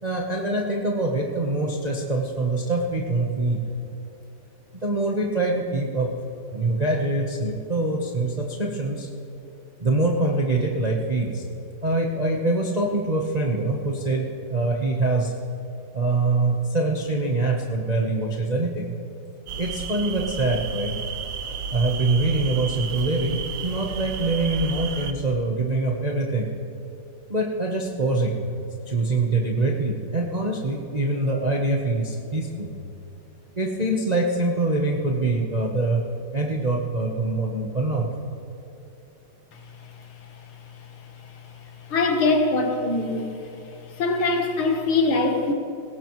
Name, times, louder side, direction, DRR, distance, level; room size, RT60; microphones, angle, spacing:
voice 1, 0.0-3.6 4.8-6.1 6.5-9.1 9.8-11.4 11.8-15.3 15.9-19.0 19.6-20.9 21.7-26.5 27.3-28.5 28.9-32.7 33.6-36.0 36.3-38.1, right 2 dB, 35° right, -1 dB, 0.6 m, -24 dB
sound 1, 19.5-25.1, right 6 dB, 70° right, 0.7 m, -32 dB
voice 2, 41.9-43.4 44.0-45.5, left 3 dB, 70° left, 3 dB, 2.1 m, -22 dB
19.5 x 17.0 x 3.1 m, 2.8 s
omnidirectional pair, 2.4 m